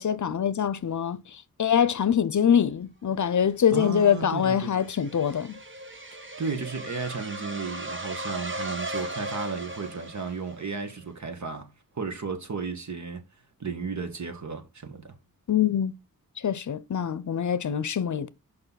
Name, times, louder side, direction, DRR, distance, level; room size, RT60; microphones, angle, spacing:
voice 1, 0.0-5.6 15.5-15.9 16.4-18.3, left 8 dB, 55° left, 0.6 m, -24 dB
sound 1, 3.7-10.8, right 1 dB, 35° right, 1.4 m, -37 dB
voice 2, 3.7-4.7 6.4-13.2 13.6-15.1, right 5 dB, 55° right, 1.7 m, -34 dB
6.7 x 5.4 x 4.1 m
wide cardioid pair, 75°, 35 cm